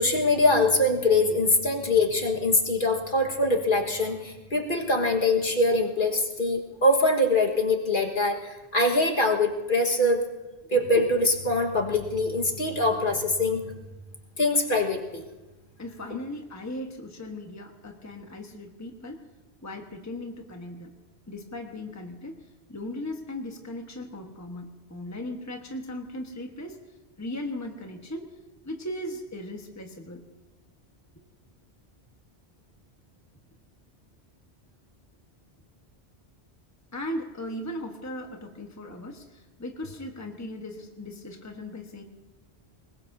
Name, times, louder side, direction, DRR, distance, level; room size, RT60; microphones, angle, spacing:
voice 1, 0.0-10.2 10.7-13.6 14.4-15.2, left 2 dB, 50° left, 0 dB, 1.8 m, -23 dB
voice 2, 15.8-19.2 19.6-20.9 21.3-22.4 22.7-26.8 27.2-28.3 28.6-30.2 36.9-42.0, left 1 dB, 15° left, 2 dB, 1.3 m, -37 dB
24.5 x 20.5 x 2.7 m, 1.1 s
omnidirectional pair, 1.1 m